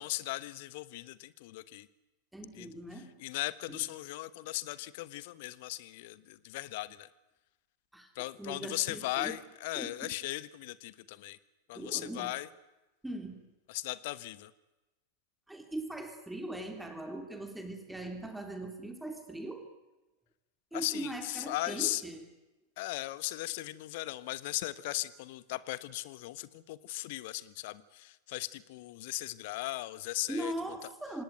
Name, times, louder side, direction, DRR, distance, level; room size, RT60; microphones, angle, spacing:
voice 1, 0.0-1.9 2.5-7.1 8.1-11.4 11.7-12.5 13.7-14.5 20.7-22.0 22.8-30.5, left 18 dB, 50° left, 17 dB, 1.2 m, -38 dB
voice 2, 2.3-3.1 3.7-3.8 7.9-8.1 8.4-9.4 9.7-10.1 11.7-12.3 13.0-13.4 15.5-19.7 20.7-22.2 30.3-31.2, right 1 dB, 5° right, 5 dB, 3.3 m, -40 dB
27.5 x 19.0 x 9.3 m, 1.1 s
figure-of-eight pair, 90°, 0 cm